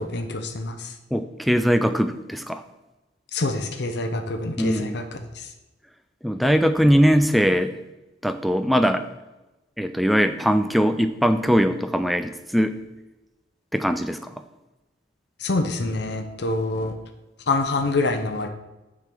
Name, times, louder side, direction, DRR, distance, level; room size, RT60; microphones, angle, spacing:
voice 1, 0.0-0.9 3.3-5.0 5.4-5.5 15.4-17.0 17.5-18.5, left 2 dB, 65° left, 6 dB, 0.7 m, -26 dB
voice 2, 1.1-2.6 4.6-5.0 6.2-7.7 8.2-9.1 9.8-12.8 13.7-14.3, equal, ahead, 9 dB, 0.3 m, -21 dB
7.5 x 3.8 x 6.6 m, 1.0 s
head